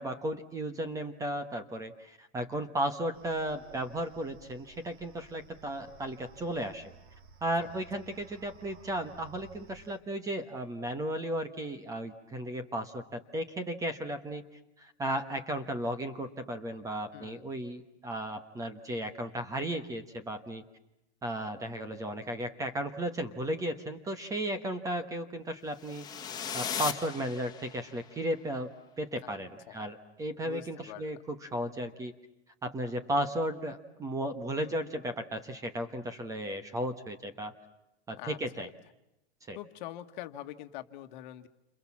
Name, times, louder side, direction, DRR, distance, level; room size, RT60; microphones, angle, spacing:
voice 1, 0.0-6.9 7.4-14.4 14.8-20.6 21.2-26.1 26.5-28.7 29.0-32.1 32.6-37.5 38.1-38.7 39.5-39.6, right 1 dB, 10° right, 10 dB, 1.2 m, -35 dB
sound 1, 3.1-10.0, right 5 dB, 50° right, 3.7 m, -56 dB
voice 2, 17.1-17.4 29.2-29.8 30.4-31.2 34.6-34.8 38.2-38.7 39.5-41.5, left 13 dB, 45° left, 8 dB, 1.7 m, -45 dB
sound 2, 25.8-28.0, left 8 dB, 10° left, 1.9 m, -37 dB
29.5 x 27.0 x 7.3 m, 0.90 s
supercardioid pair, 170°, 34 cm